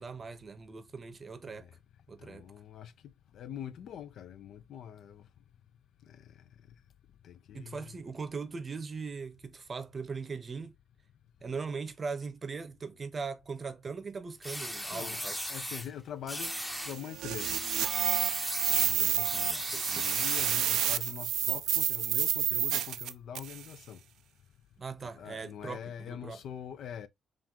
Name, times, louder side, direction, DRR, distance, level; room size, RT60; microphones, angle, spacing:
voice 1, 0.0-1.7 2.1-2.5 7.5-10.8 11.4-15.4 19.7-20.0 24.8-26.4, right 5 dB, 35° right, 0.7 m, -40 dB
voice 2, 2.2-5.3 6.1-6.4 7.2-7.8 14.9-15.2 15.5-16.5 16.8-17.6 18.7-24.0 25.2-27.1, left 9 dB, 70° left, 0.4 m, -44 dB
sound 1, 14.4-15.9 16.3-17.0 17.4-20.7, equal, 5° left, 0.7 m, -37 dB
sound 2, 16.4-23.6, right 11 dB, 80° right, 0.3 m, -30 dB
3.8 x 2.5 x 4.3 m
cardioid pair, 90°, 0 cm